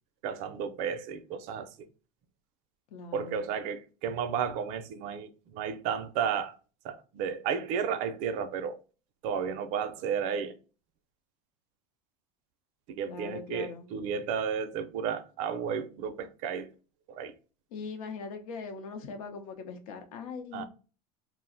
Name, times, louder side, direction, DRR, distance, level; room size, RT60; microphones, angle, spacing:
voice 1, 0.2-1.7 3.1-6.5 6.8-8.8 9.2-10.6 12.9-16.7 17.1-17.3 20.5-20.6, right 7 dB, 45° right, 0.4 m, -33 dB
voice 2, 2.9-3.5 13.1-13.9 17.7-20.6, left 5 dB, 80° left, 0.7 m, -41 dB
2.4 x 2.0 x 3.8 m
supercardioid pair, 155°, 18 cm